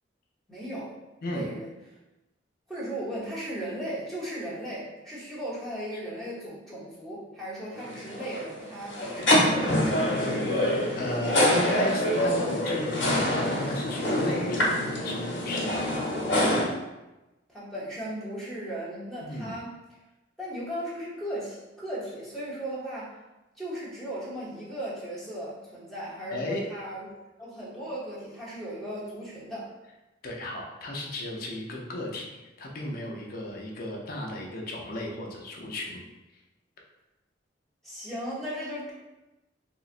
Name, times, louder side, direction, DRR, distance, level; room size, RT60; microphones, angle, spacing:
voice 1, 0.5-0.9 1.3-1.7 2.7-9.9 17.5-19.8 20.4-23.1 23.6-27.1 27.4-29.7 37.8-38.9, right 1 dB, ahead, -10 dB, 0.8 m, -36 dB
sound 1, 7.7-16.6, left 1 dB, 75° left, 1.0 m, -26 dB
voice 2, 10.1-10.4 11.0-16.0 19.2-19.6 26.3-26.6 30.2-36.0, left 1 dB, 55° left, -1 dB, 0.5 m, -35 dB
3.8 x 2.0 x 2.4 m, 1.0 s
head